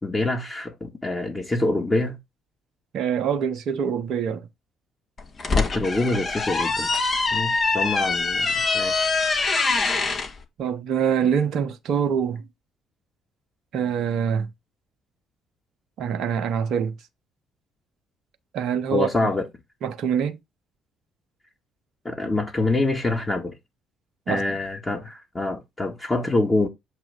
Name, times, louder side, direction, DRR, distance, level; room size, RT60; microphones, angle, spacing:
voice 1, 0.0-2.2 5.6-6.9 7.3-9.1 18.9-19.5 22.0-23.5 24.3-26.7, left 2 dB, 20° left, 1.9 m, -25 dB
voice 2, 2.9-4.5 10.6-12.4 13.7-14.5 16.0-16.9 18.5-19.3 19.8-20.4 24.3-24.4, right 7 dB, 55° right, 0.9 m, -25 dB
sound 1, 5.2-10.3, left 3 dB, 35° left, 1.6 m, -24 dB
7.4 x 3.3 x 5.0 m
figure-of-eight pair, 45°, 0 cm